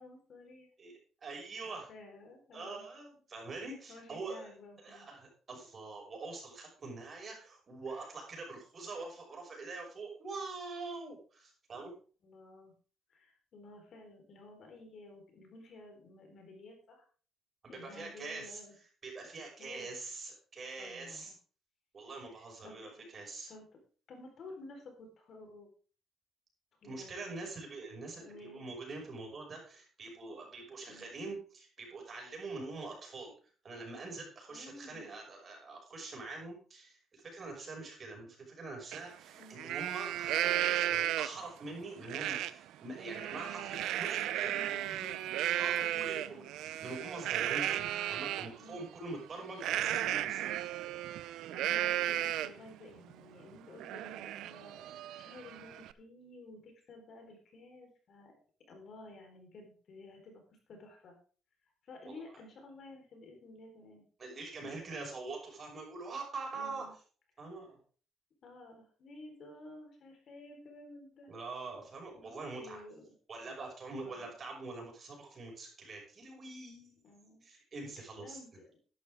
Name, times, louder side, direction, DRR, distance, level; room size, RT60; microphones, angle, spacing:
voice 1, 0.0-0.7 1.7-2.9 3.9-5.1 7.9-8.1 12.2-12.7 13.1-17.0 17.7-18.7 19.6-19.9 20.8-21.3 22.4-22.9 23.5-23.6 24.1-25.7 26.8-27.4 28.2-28.7 30.9-31.1 34.5-35.1 39.3-39.8 44.3-45.2 45.8-46.5 48.6-48.9 51.3-58.3 58.7-60.4 60.7-61.2 61.8-64.0 64.6-64.7 66.5-66.9 68.4-71.3 72.1-73.0 74.0-74.3 77.0-77.4 78.0-78.7, left 2 dB, 55° left, 3 dB, 4.1 m, -53 dB
voice 2, 0.8-1.9 2.5-4.5 4.8-11.9 17.6-18.6 19.0-21.3 21.9-23.5 26.8-33.3 33.6-44.6 45.5-50.5 62.0-62.2 64.2-66.9 67.4-67.8 71.3-72.8 73.3-77.0 77.4-78.4, right 3 dB, 35° right, 0 dB, 5.9 m, -44 dB
Livestock farm animals working animals, 38.9-39.0 39.4-41.5 42.1-42.5 42.9-48.5 49.6-52.7 53.1-53.2 53.5-55.9, right 13 dB, 85° right, 0.6 m, -34 dB
12.0 x 11.5 x 3.6 m, 0.39 s
cardioid pair, 110°, 0 cm